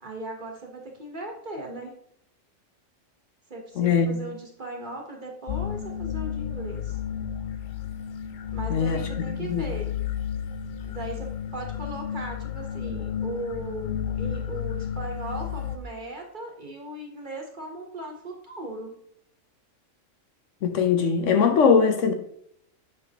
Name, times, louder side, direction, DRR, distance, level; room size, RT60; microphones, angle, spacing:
voice 1, 0.0-2.0 3.5-7.0 8.5-10.0 10.8-18.9, right 2 dB, 40° right, 1.2 m, -37 dB
voice 2, 3.8-4.2 8.7-9.7 20.6-22.1, left 6 dB, 65° left, 1.0 m, -21 dB
sound 1, 5.5-15.8, left 9 dB, 85° left, 0.4 m, -32 dB
8.0 x 5.3 x 2.9 m
omnidirectional pair, 1.4 m